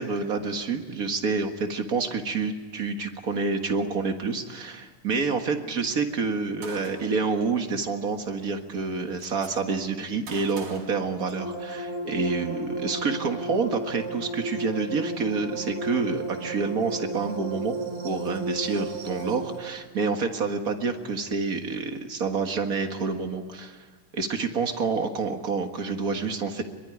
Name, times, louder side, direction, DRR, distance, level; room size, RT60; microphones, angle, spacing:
voice 1, 0.0-17.8 18.0-23.9 24.1-26.6, right 4 dB, 40° right, 5 dB, 1.4 m, -28 dB
Gunshot gunfire, 6.6-7.3 8.4-8.5 8.8-9.5 10.3-11.8, right 4 dB, 80° right, 4.8 m, -43 dB
sound 1, 11.4-19.6, right 2 dB, 60° right, 7.8 m, -33 dB
24.0 x 22.5 x 10.0 m, 1.4 s
omnidirectional pair, 3.7 m